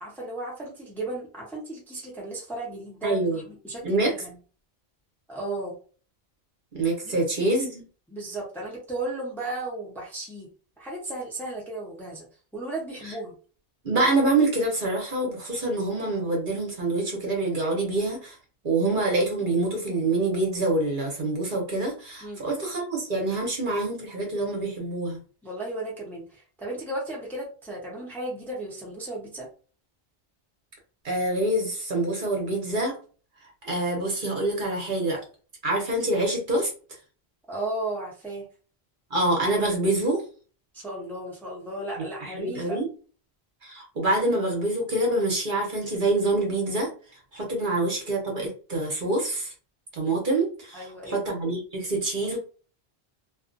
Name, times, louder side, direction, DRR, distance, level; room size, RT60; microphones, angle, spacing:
voice 1, 0.0-4.4 5.3-5.8 7.0-7.2 8.1-10.5 10.8-12.3 12.5-13.4 22.2-22.4 25.4-29.5 37.5-38.5 40.7-42.8 47.6-47.7 50.7-51.2, right 2 dB, ahead, -4 dB, 0.8 m, -35 dB
voice 2, 3.0-3.4 3.8-4.1 6.7-7.8 13.8-18.4 18.6-25.2 31.0-33.0 33.6-35.2 35.6-36.7 39.1-40.2 42.2-42.9 43.6-46.9 47.3-49.5 49.9-52.4, right 2 dB, 55° right, 0 dB, 1.0 m, -26 dB
2.5 x 2.4 x 2.5 m, 0.38 s
omnidirectional pair, 1.0 m